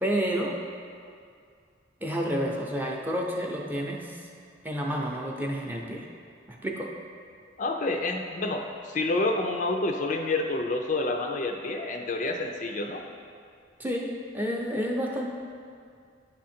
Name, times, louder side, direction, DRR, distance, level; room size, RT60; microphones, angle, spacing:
voice 1, 0.0-0.6 2.0-4.2 4.6-6.1 6.5-6.9 13.8-15.3, equal, 10° right, -1 dB, 0.6 m, -30 dB
voice 2, 7.6-13.0, left 2 dB, 40° left, 3 dB, 0.4 m, -28 dB
10.5 x 3.7 x 4.3 m, 2.3 s
head